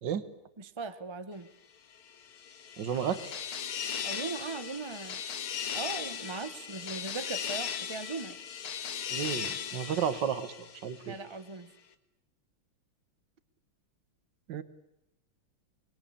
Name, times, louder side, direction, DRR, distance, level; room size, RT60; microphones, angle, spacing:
voice 1, 0.6-1.5 4.0-5.2 5.7-8.4 11.1-11.7, right 4 dB, 25° right, 10 dB, 0.5 m, -39 dB
sound 1, 2.1-11.2, left 8 dB, 85° left, 2.4 m, -38 dB
voice 2, 2.8-3.4 9.1-11.2 14.5-14.6, right 8 dB, 60° right, 12 dB, 1.9 m, -33 dB
25.0 x 20.5 x 8.7 m, 0.85 s
omnidirectional pair, 2.4 m